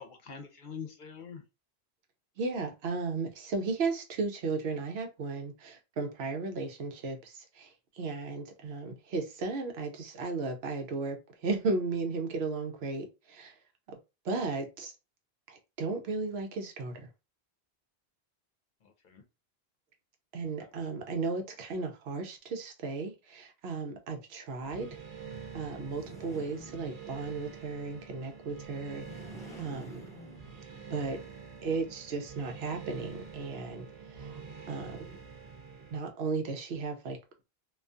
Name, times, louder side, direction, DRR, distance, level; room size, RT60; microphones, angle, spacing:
voice 1, 0.0-1.4 8.9-9.0 14.5-14.6 18.8-19.2 20.6-20.7, left 6 dB, 55° left, 0.7 m, -45 dB
voice 2, 2.4-13.5 13.9-14.0 14.2-14.9 15.5-17.1 20.3-25.0 25.5-29.3 29.6-30.1 30.9-31.2 31.6-34.4 34.7-35.2 35.9-37.2, right 4 dB, 80° right, 0.9 m, -35 dB
sound 1, 24.6-36.0, right 6 dB, 45° right, 0.6 m, -46 dB
sound 2, 25.7-27.4 28.8-30.9, right 1 dB, 5° left, 0.8 m, -50 dB
2.4 x 2.3 x 2.5 m
omnidirectional pair, 1.1 m